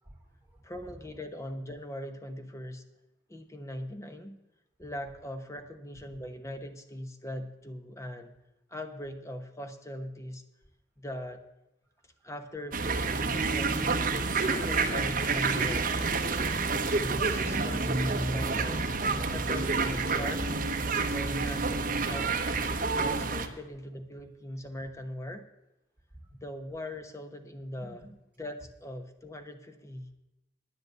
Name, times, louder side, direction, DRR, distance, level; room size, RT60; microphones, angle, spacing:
voice 1, 0.0-0.6 5.9-6.0 12.2-12.3 15.9-19.8 27.8-28.1, right 1 dB, 10° right, -3 dB, 3.6 m, -40 dB
voice 2, 0.6-2.8 3.3-4.4 4.8-8.4 8.7-10.4 11.0-11.4 12.2-15.9 16.9-18.8 19.3-20.5 21.1-22.4 22.9-25.4 26.4-28.0 28.4-30.1, left 1 dB, 15° left, 7 dB, 1.1 m, -41 dB
sound 1, 12.7-23.5, right 4 dB, 50° right, 1.0 m, -29 dB
11.0 x 9.2 x 7.9 m, 0.94 s
head